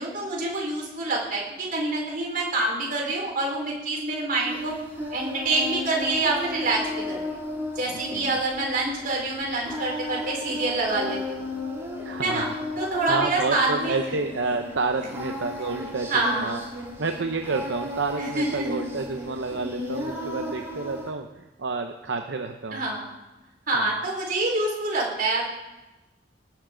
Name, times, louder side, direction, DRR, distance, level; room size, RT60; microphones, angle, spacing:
voice 1, 0.0-4.7 5.1-7.2 7.8-11.4 12.2-12.5 12.8-13.9 15.1-15.2 16.1-16.6 18.2-18.8 22.7-23.1 23.7-25.5, right 2 dB, 50° right, -2 dB, 4.5 m, -26 dB
Singing, 4.4-21.1, left 1 dB, 15° right, 5.7 m, -35 dB
voice 2, 7.9-8.4 12.0-12.5 13.1-16.6 17.0-22.9 23.7-23.9, right 3 dB, 75° right, 5 dB, 0.7 m, -30 dB
19.0 x 10.5 x 3.9 m, 1.0 s
head